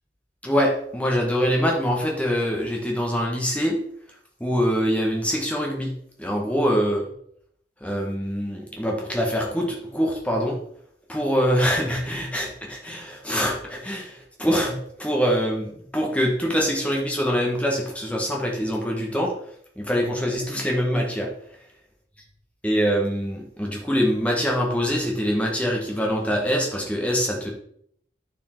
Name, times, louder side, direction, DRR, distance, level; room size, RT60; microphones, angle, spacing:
voice 1, 0.4-3.8 4.4-5.9 6.2-7.0 7.8-10.6 11.1-19.3 19.8-21.3 22.6-27.5, equal, 5° left, -1 dB, 1.6 m, -24 dB
9.7 x 4.6 x 4.5 m, 0.67 s
head